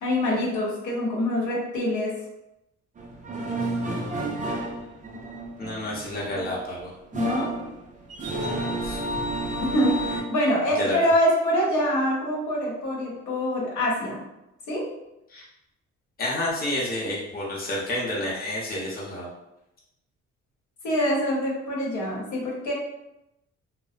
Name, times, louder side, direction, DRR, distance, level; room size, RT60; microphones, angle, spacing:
voice 1, 0.0-2.2 7.1-7.6 9.6-14.2 14.7-14.9 20.8-22.7, equal, 75° left, -4 dB, 0.9 m, -25 dB
sound 1, 3.0-10.2, right 1 dB, 25° right, 0.4 m, -31 dB
voice 2, 3.9-4.4 5.6-6.9 8.3-9.5 10.8-11.0 15.3-15.4 16.2-19.3, left 1 dB, 30° left, -5 dB, 0.7 m, -31 dB
2.6 x 2.0 x 2.4 m, 0.89 s
cardioid pair, 90°, 30 cm